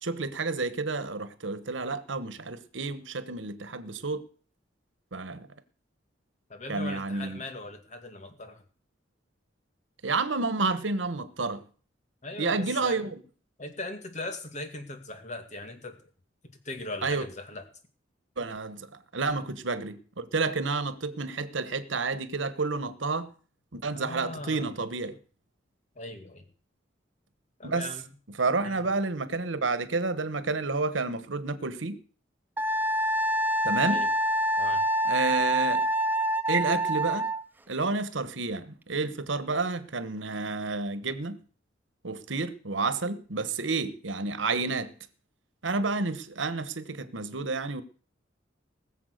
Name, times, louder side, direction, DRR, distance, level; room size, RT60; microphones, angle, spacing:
voice 1, 0.0-4.2 5.1-5.5 6.7-7.4 10.0-11.6 12.4-13.2 17.0-17.3 18.4-18.9 19.1-23.3 23.7-25.2 27.6-27.9 28.4-32.0 33.6-34.0 35.0-35.8 36.5-37.3 37.7-41.4 42.0-44.9 45.6-47.8, right 3 dB, 90° right, 1.2 m, -30 dB
voice 2, 6.5-8.6 12.2-13.1 13.6-16.1 16.4-17.6 23.9-24.7 26.0-26.4 27.6-28.1 28.6-28.9 33.8-34.1 34.6-34.8, left 2 dB, 40° left, 2.2 m, -39 dB
Wind instrument woodwind instrument, 32.6-37.4, equal, 10° right, 0.6 m, -26 dB
19.5 x 7.3 x 6.6 m
head